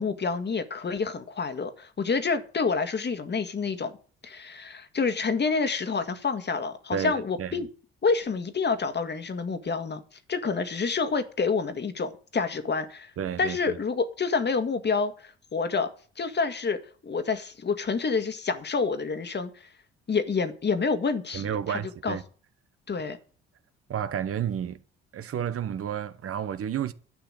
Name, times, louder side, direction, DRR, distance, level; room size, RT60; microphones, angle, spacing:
voice 1, 0.0-3.9 4.2-7.7 8.0-10.0 10.3-13.1 13.4-15.9 16.2-19.7 20.1-22.2 22.9-23.2, left 4 dB, 35° left, 1.8 m, -28 dB
voice 2, 6.9-7.6 13.2-13.8 21.3-22.2 23.9-24.8 25.1-26.9, right 9 dB, 50° right, 1.0 m, -31 dB
11.5 x 5.8 x 8.8 m
hypercardioid pair, 55°, 29 cm